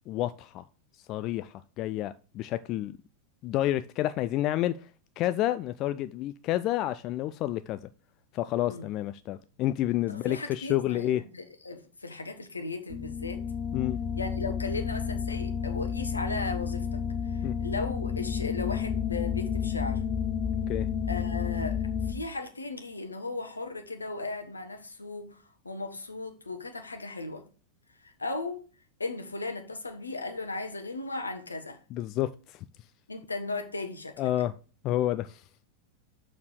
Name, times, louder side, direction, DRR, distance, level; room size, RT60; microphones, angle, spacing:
voice 1, 0.1-0.6 1.1-3.0 3.4-4.9 5.2-7.8 8.3-11.2 13.7-14.0 17.4-17.5 20.7-20.9 31.9-32.6 34.2-34.5 34.8-35.4, left 14 dB, 35° left, 0.3 m, -29 dB
voice 2, 10.1-13.4 14.2-20.0 21.0-21.8 22.0-25.4 25.6-27.4 28.0-28.6 29.0-31.8 33.1-34.3, left 3 dB, 80° left, 1.2 m, -36 dB
sound 1, 12.9-22.1, left 7 dB, 20° left, 0.8 m, -31 dB
6.8 x 4.4 x 6.4 m
figure-of-eight pair, 90°, 0 cm